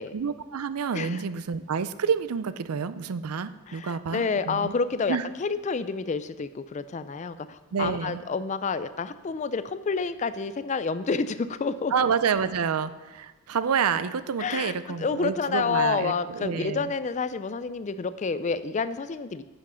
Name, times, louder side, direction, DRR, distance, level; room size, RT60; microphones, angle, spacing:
voice 1, 0.1-4.7 5.1-5.2 7.7-8.2 11.9-16.9, right 6 dB, 80° right, 14 dB, 0.5 m, -28 dB
voice 2, 3.7-11.9 14.4-19.4, left 4 dB, 35° left, 13 dB, 0.3 m, -29 dB
9.8 x 6.0 x 5.6 m, 1.2 s
head